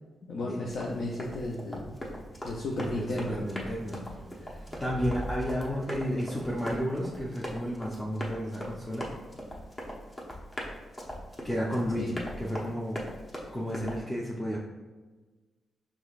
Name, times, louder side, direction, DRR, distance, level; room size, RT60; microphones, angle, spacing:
voice 1, 0.2-2.0 2.4-3.4 12.0-12.1, left 1 dB, 70° left, -2 dB, 0.5 m, -34 dB
Run, 0.7-14.0, equal, 30° left, 1.1 m, -41 dB
sound 1, 1.8-6.8, right 2 dB, 40° right, 0.3 m, -44 dB
voice 2, 2.8-4.1 4.4-9.1 11.4-13.0 13.5-14.6, equal, 15° left, -4 dB, 0.7 m, -32 dB
4.8 x 3.5 x 2.4 m, 1.3 s
cardioid pair, 60°, 0 cm